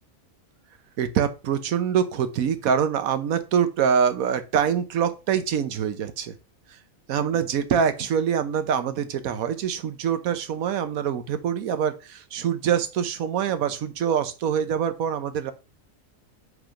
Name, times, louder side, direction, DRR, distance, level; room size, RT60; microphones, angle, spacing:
voice 1, 1.0-6.3 7.1-15.5, right 8 dB, 80° right, 1.3 m, -25 dB
8.1 x 3.6 x 5.1 m
omnidirectional pair, 1.5 m